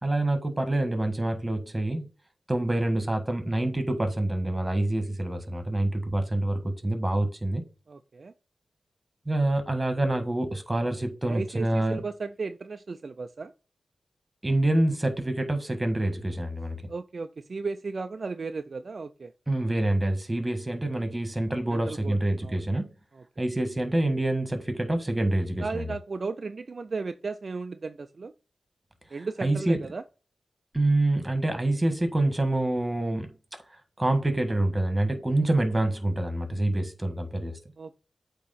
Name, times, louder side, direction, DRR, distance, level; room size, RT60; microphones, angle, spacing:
voice 1, 0.0-2.1 2.5-7.6 9.2-12.0 14.4-16.8 19.5-22.9 23.4-25.9 29.4-29.8 30.7-33.3 34.0-37.5, right 1 dB, 20° right, 1.5 m, -26 dB
voice 2, 7.9-8.3 11.3-13.5 16.9-19.3 21.7-22.2 22.4-22.6 23.1-23.2 25.6-28.3 29.1-30.0 37.8-38.0, right 4 dB, 55° right, 0.4 m, -35 dB
8.3 x 3.0 x 4.2 m
cardioid pair, 65°, 0 cm